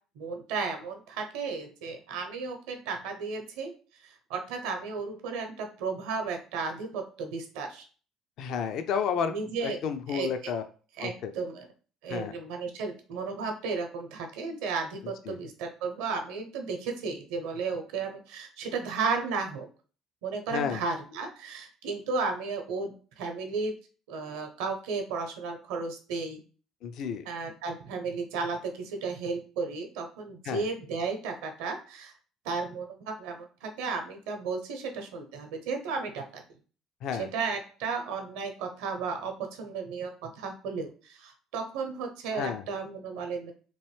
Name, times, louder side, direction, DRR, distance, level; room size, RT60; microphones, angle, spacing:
voice 1, 0.2-3.7 4.0-7.8 9.3-9.8 10.1-10.5 11.0-11.7 12.0-19.7 20.2-23.7 24.1-26.4 27.3-32.1 32.4-36.4 37.1-39.3 39.6-43.5, right 4 dB, 75° right, 5 dB, 0.7 m, -34 dB
voice 2, 8.4-9.3 9.6-10.6 11.0-11.3 12.1-12.3 15.3-15.4 20.5-20.8 26.8-27.2 30.4-30.7 37.0-37.3 42.3-42.7, left 7 dB, 60° left, 9 dB, 0.4 m, -31 dB
3.0 x 2.6 x 3.2 m, 0.39 s
hypercardioid pair, 60°, 0 cm